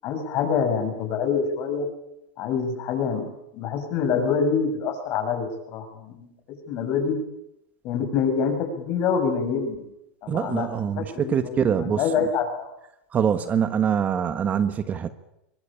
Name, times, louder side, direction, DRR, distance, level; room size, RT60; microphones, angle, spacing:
voice 1, 0.0-1.9 2.4-3.3 3.5-6.3 6.7-7.2 7.8-9.9 10.2-10.7 11.2-12.7, left 6 dB, 45° left, 5 dB, 7.0 m, -26 dB
voice 2, 10.3-12.0 13.1-15.1, right 8 dB, 25° right, 11 dB, 1.4 m, -24 dB
23.5 x 20.0 x 8.8 m, 0.84 s
supercardioid pair, 130°, 6 cm